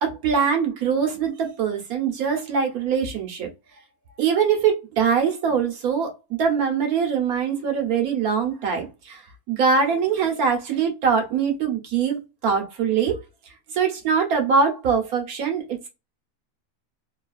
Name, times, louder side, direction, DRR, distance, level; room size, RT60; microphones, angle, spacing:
voice 1, 0.0-3.5 4.2-6.1 6.4-9.2 9.5-13.2 13.7-15.9, right 6 dB, 90° right, 1.5 m, -23 dB
3.4 x 2.4 x 2.3 m
omnidirectional pair, 1.5 m